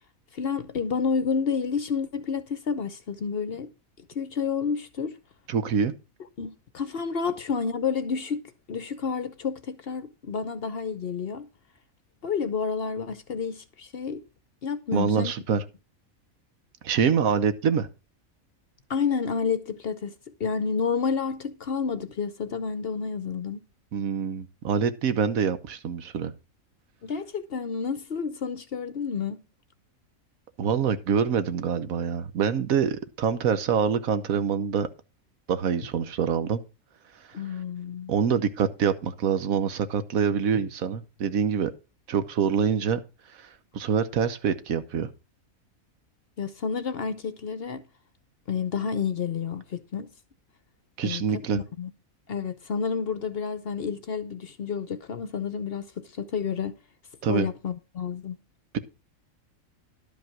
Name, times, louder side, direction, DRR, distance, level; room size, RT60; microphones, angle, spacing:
voice 1, 0.3-3.7 4.1-5.2 6.4-8.4 8.7-11.5 12.2-14.2 14.6-15.3 18.9-20.1 20.4-23.6 27.0-29.4 37.3-38.1 46.4-47.8 48.5-50.1 51.0-51.2 51.5-51.9 52.3-56.8 57.3-58.4, left 6 dB, 55° left, 0.8 m, -30 dB
voice 2, 5.5-5.9 14.9-15.6 16.8-17.9 23.9-26.3 30.6-34.9 35.5-36.6 38.1-41.7 42.1-43.0 43.7-45.1 51.0-51.6 57.2-57.5, right 7 dB, 80° right, 1.3 m, -25 dB
11.5 x 5.3 x 5.9 m
omnidirectional pair, 1.5 m